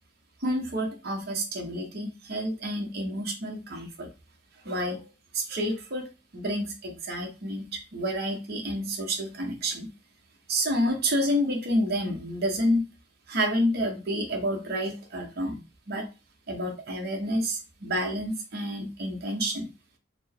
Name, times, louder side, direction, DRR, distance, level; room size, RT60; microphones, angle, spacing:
voice 1, 0.4-4.1 4.6-5.1 5.3-6.1 6.3-9.9 10.5-12.9 13.3-15.6 15.9-16.0 16.5-19.7, equal, 55° right, 2 dB, 1.0 m, -29 dB
4.4 x 2.1 x 4.3 m, 0.30 s
head